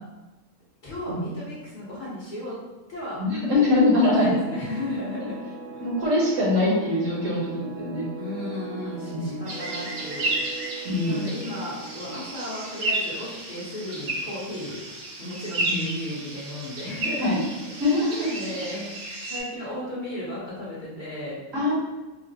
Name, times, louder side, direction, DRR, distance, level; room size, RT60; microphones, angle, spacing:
voice 1, 0.8-2.6 2.9-3.2 3.8-5.4 5.7-5.8 8.2-10.3 11.1-14.8 15.2-17.3 17.7-17.8 18.3-18.9 19.2-21.4, left 1 dB, 40° left, -8 dB, 1.0 m, -34 dB
voice 2, 3.2-4.3 5.8-8.1 9.1-9.3 10.8-11.2 15.7-15.9 17.2-17.4 17.8-18.3 21.5-21.7, left 2 dB, 65° right, -5 dB, 1.3 m, -23 dB
sound 1, 4.0-13.3, right 4 dB, ahead, 0.7 m, -40 dB
sound 2, 9.5-19.4, right 2 dB, 80° right, 1.2 m, -32 dB
3.9 x 2.1 x 2.7 m, 1.1 s
omnidirectional pair, 1.5 m